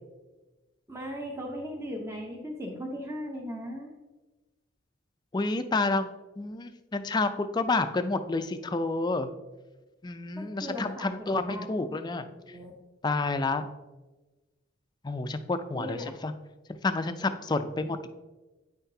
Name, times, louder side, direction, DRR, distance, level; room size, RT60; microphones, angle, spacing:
voice 1, 0.9-3.9 10.4-11.9 12.4-12.7 15.7-16.1, equal, 15° right, 0 dB, 0.6 m, -38 dB
voice 2, 5.3-6.1 6.4-9.3 10.0-12.3 13.0-13.6 15.0-16.3 16.7-18.1, left 3 dB, 20° left, 9 dB, 0.3 m, -29 dB
8.9 x 5.7 x 2.7 m, 1.1 s
head